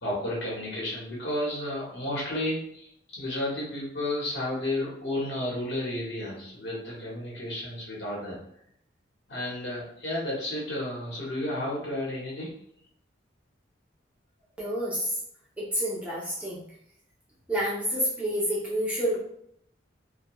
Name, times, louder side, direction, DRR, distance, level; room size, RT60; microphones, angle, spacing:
voice 1, 0.0-8.4 9.3-12.5, left 1 dB, 60° left, -5 dB, 1.1 m, -32 dB
voice 2, 14.6-15.1 15.6-16.6 17.5-19.2, equal, 5° right, -7 dB, 0.7 m, -28 dB
2.8 x 2.3 x 3.0 m, 0.70 s
head